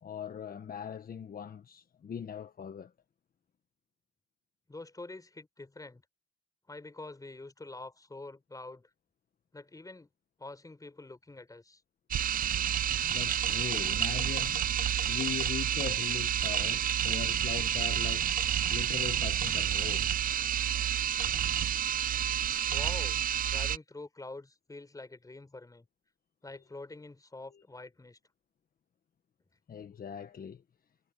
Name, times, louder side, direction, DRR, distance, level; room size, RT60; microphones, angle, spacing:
voice 1, 0.0-2.9 13.0-14.6 15.1-18.3 18.7-20.1 26.5-26.6 27.5-27.6 29.7-30.6, left 8 dB, 45° left, 1.4 m, -40 dB
voice 2, 4.7-6.0 6.7-8.9 9.5-10.1 10.4-11.8 22.7-23.2 23.5-25.9 26.4-28.2, left 2 dB, 15° left, 5.0 m, -46 dB
sound 1, 12.1-23.8, right 10 dB, 45° right, 0.5 m, -29 dB
cardioid pair, 90°, 20 cm